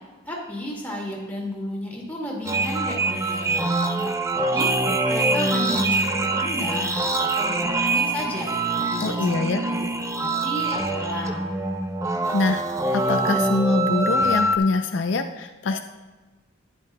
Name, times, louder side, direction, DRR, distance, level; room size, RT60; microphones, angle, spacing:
voice 1, 0.3-3.8 4.3-4.7 5.1-7.0 7.4-9.9 10.1-11.5, left 1 dB, 10° left, -3 dB, 1.9 m, -33 dB
sound 1, 2.5-14.6, right 2 dB, 15° right, 0.4 m, -24 dB
voice 2, 9.0-9.7 12.3-12.6 12.9-15.8, left 3 dB, 65° left, 6 dB, 0.4 m, -24 dB
11.0 x 9.8 x 2.2 m, 1.3 s
head